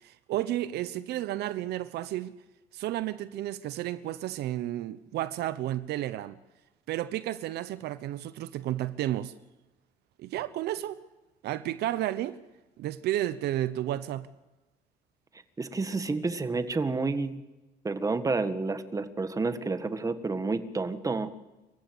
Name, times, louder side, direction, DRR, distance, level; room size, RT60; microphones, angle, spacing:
voice 1, 0.0-2.3 2.7-6.4 6.9-9.3 10.2-11.0 11.4-12.4 12.8-14.3, right 13 dB, 75° right, 1.0 m, -32 dB
voice 2, 15.6-17.4 17.8-21.3, right 3 dB, 20° right, 1.6 m, -30 dB
27.0 x 15.0 x 8.0 m
cardioid pair, 110°, 17 cm